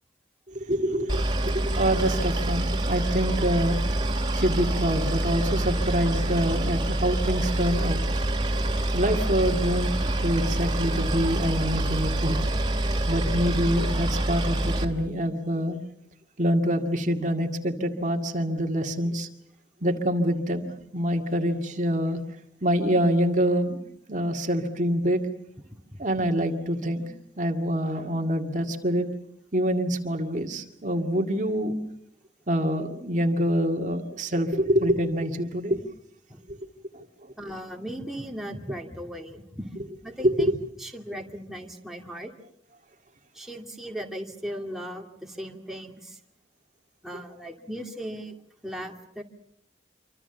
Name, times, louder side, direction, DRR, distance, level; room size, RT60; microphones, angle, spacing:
voice 1, 0.5-12.4 13.1-15.8 16.4-19.3 19.8-22.2 22.6-23.8 24.1-25.3 26.0-27.0 27.4-29.1 29.5-31.8 32.5-35.8 36.5-36.6 36.9-37.3 40.2-40.6, equal, 40° right, 4 dB, 2.1 m, -26 dB
Boat Water vehicle, 1.1-14.8, right 1 dB, 25° right, 2.8 m, -26 dB
voice 2, 25.9-26.2 36.3-36.4 37.4-39.8 40.0-40.5 40.8-42.3 43.3-46.2 47.0-48.4 48.6-49.2, equal, ahead, 0 dB, 2.5 m, -37 dB
27.5 x 25.0 x 7.0 m, 0.71 s
head